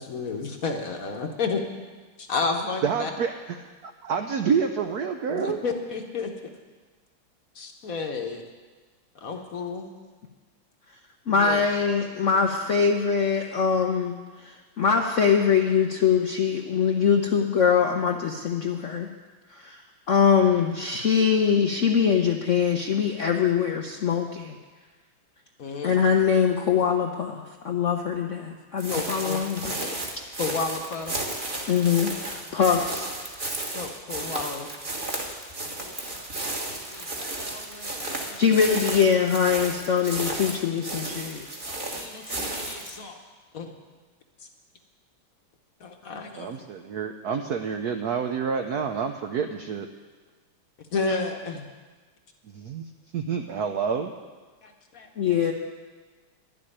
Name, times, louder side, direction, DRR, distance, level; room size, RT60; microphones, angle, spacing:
voice 1, 0.0-1.6 2.2-3.1 5.3-6.3 7.5-8.4 9.1-9.9 11.3-11.6 12.4-12.5 25.6-25.9 28.9-29.4 29.8-29.9 30.4-31.2 33.7-34.7 35.8-36.0 36.4-36.5 36.9-38.4 41.6-43.2 43.5-43.7 45.8-46.5 50.9-51.7 54.6-55.1, left 4 dB, 50° left, 4 dB, 1.1 m, -32 dB
voice 2, 2.8-5.6 46.4-49.9 52.4-52.9 53.1-54.1, right 6 dB, 75° right, 6 dB, 0.8 m, -28 dB
voice 3, 11.3-14.1 14.4-19.1 19.5-19.8 20.1-24.6 25.8-29.8 31.7-33.1 38.4-41.4 55.2-55.5, left 6 dB, 85° left, 2 dB, 0.6 m, -23 dB
sound 1, 28.8-43.0, right 2 dB, 25° right, 1.3 m, -33 dB
11.0 x 7.6 x 10.0 m, 1.4 s
omnidirectional pair, 2.4 m